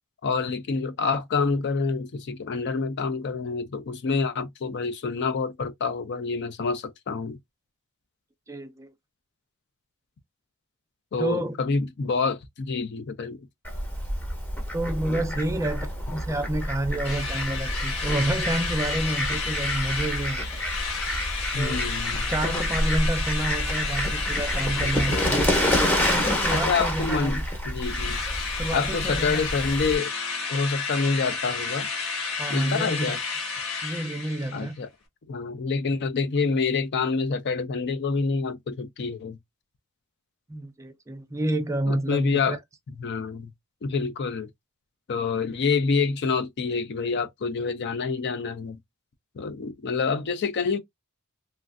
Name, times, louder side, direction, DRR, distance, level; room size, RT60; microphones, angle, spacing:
voice 1, 0.2-7.4 11.1-13.4 21.5-22.3 24.8-25.5 26.1-28.2 28.7-30.1 30.5-31.9 32.5-33.2 34.5-34.9 35.3-39.4 41.9-42.6 43.0-43.5 43.8-44.5 45.1-48.8 49.4-50.8, left 4 dB, 50° left, 0.5 m, -27 dB
voice 2, 8.5-8.9 11.2-11.6 14.7-20.4 21.6-21.9 22.3-25.5 26.1-27.4 28.6-29.5 32.4-33.2 33.8-34.7 40.5-42.6, right 1 dB, 15° right, 0.4 m, -29 dB
Fowl, 13.6-30.0, equal, 10° left, 0.7 m, -28 dB
Drill, 17.0-27.4 27.8-34.7, left 4 dB, 70° left, 1.2 m, -31 dB
3.1 x 2.4 x 2.4 m
head